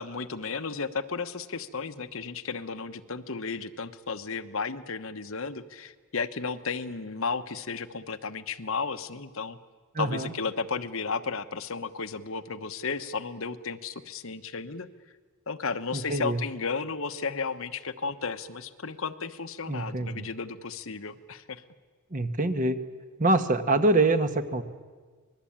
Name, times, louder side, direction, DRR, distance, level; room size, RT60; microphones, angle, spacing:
voice 1, 0.0-9.6 10.0-14.9 15.5-21.6, left 4 dB, 65° left, 10 dB, 1.1 m, -34 dB
voice 2, 9.9-10.3 15.9-16.4 19.7-20.3 22.1-22.8 23.2-24.6, right 2 dB, 35° right, 9 dB, 1.4 m, -25 dB
25.5 x 21.0 x 8.8 m, 1.5 s
head